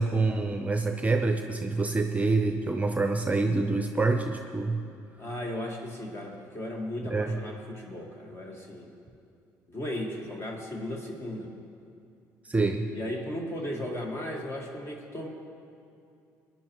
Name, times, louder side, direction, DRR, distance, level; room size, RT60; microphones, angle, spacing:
voice 1, 0.0-4.8 7.0-7.4 12.4-12.9, right 3 dB, 20° right, 5 dB, 0.7 m, -26 dB
voice 2, 5.2-8.9 9.7-11.5 12.9-15.3, left 1 dB, 35° left, 0 dB, 1.7 m, -36 dB
18.0 x 10.5 x 3.1 m, 2.5 s
supercardioid pair, 65°, 8 cm